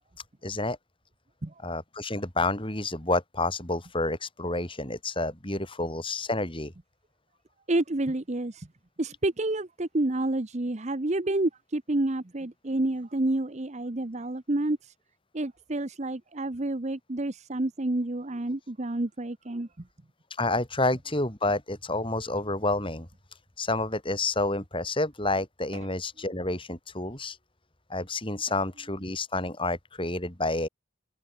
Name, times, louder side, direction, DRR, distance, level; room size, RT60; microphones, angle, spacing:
voice 1, 0.4-0.8 1.6-6.7 20.4-23.1 23.6-27.4 27.9-30.7, left 2 dB, 25° left, 4.7 m, -29 dB
voice 2, 7.7-8.7 9.0-14.8 15.3-19.7, right 2 dB, 35° right, 0.9 m, -29 dB
open air
head